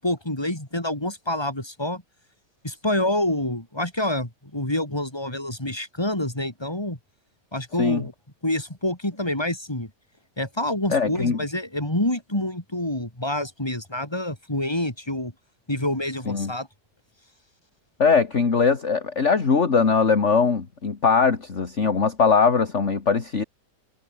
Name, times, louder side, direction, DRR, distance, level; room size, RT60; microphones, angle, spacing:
voice 1, 0.0-2.0 2.6-7.0 7.5-8.1 8.4-9.9 10.4-15.3 15.7-16.7, left 1 dB, 15° left, 4.6 m, -27 dB
voice 2, 10.9-11.4 16.3-16.5 18.0-23.4, left 5 dB, 40° left, 2.3 m, -21 dB
omnidirectional pair, 1.8 m